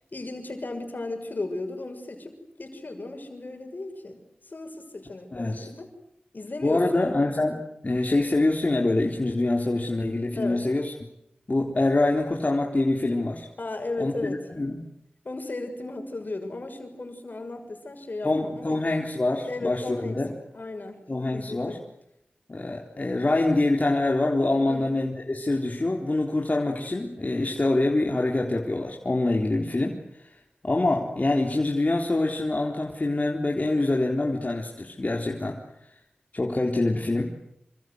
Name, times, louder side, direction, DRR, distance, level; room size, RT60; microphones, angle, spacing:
voice 1, 0.1-5.9 6.3-7.1 10.3-10.6 13.6-14.4 15.2-18.9 19.5-20.2 20.5-21.0 21.3-21.8 24.6-24.9, left 2 dB, 65° left, 5 dB, 6.5 m, -35 dB
voice 2, 5.3-5.7 6.6-10.9 11.5-13.5 14.0-14.9 18.2-20.3 21.1-21.8 22.5-30.0 30.6-35.6 36.3-37.4, left 2 dB, 45° left, 0 dB, 3.9 m, -25 dB
28.0 x 26.0 x 8.1 m, 0.81 s
cardioid pair, 40°, 3 cm